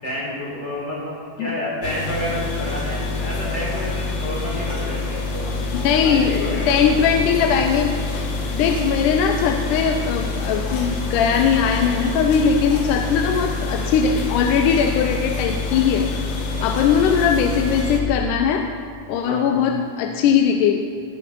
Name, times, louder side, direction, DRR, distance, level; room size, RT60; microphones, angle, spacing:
voice 1, 0.0-5.6 6.0-7.0 16.6-16.7 16.9-17.2 19.2-19.6, left 1 dB, 35° left, -6 dB, 4.6 m, -30 dB
sound 1, 1.8-18.0, left 3 dB, 60° left, 2.3 m, -26 dB
voice 2, 5.7-7.9 8.5-16.1 16.6-18.7 19.1-20.8, left 7 dB, 90° left, 5 dB, 2.3 m, -20 dB
19.0 x 8.2 x 5.4 m, 2.4 s
omnidirectional pair, 3.5 m